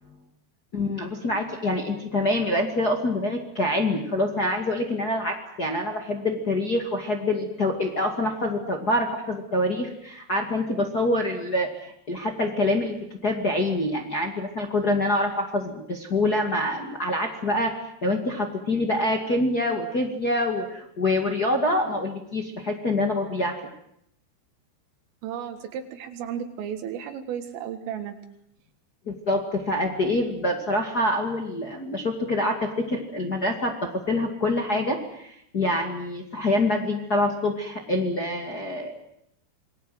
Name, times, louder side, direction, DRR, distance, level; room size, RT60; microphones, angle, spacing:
voice 1, 0.7-17.7 18.0-23.5 29.0-33.7 34.1-39.0, left 1 dB, 45° left, 2 dB, 1.3 m, -26 dB
voice 2, 25.2-28.2, right 8 dB, 80° right, 6 dB, 4.3 m, -34 dB
27.5 x 21.5 x 7.8 m, 0.74 s
omnidirectional pair, 5.9 m